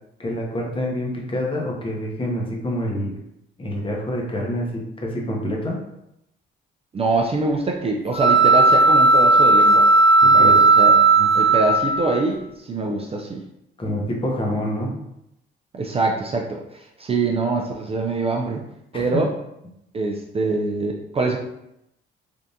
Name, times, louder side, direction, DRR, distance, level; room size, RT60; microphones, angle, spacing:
voice 1, 0.2-3.2 3.6-5.8 10.2-10.5 11.2-11.3 13.8-14.9 18.9-19.2, left 1 dB, 25° left, -1 dB, 0.8 m, -27 dB
voice 2, 6.9-9.9 10.3-11.0 11.3-13.4 15.7-18.6 18.9-19.3 19.9-21.4, right 3 dB, 30° right, 0 dB, 0.4 m, -24 dB
sound 1, 8.1-12.2, right 3 dB, 50° left, 1.4 m, -14 dB
3.4 x 2.4 x 2.7 m, 0.82 s
cardioid pair, 90°, 20 cm